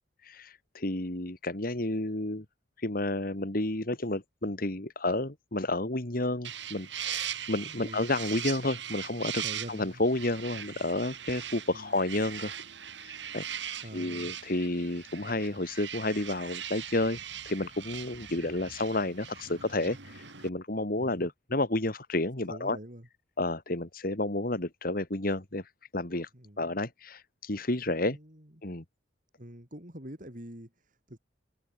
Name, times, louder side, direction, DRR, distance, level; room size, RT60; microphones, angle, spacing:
voice 1, 0.2-2.4 2.8-9.4 9.7-12.6 13.0-13.5 13.9-17.2 17.5-22.8 23.4-26.3 26.6-28.2 28.6-28.8, left 2 dB, 50° left, 2.3 m, -31 dB
sound 1, 6.4-20.5, right 9 dB, 70° right, 6.1 m, -40 dB
voice 2, 9.4-10.0 11.7-12.0 13.8-14.4 21.0-21.3 22.5-23.1 26.3-26.7 27.9-28.6 29.4-31.2, equal, 45° right, 5.8 m, -45 dB
head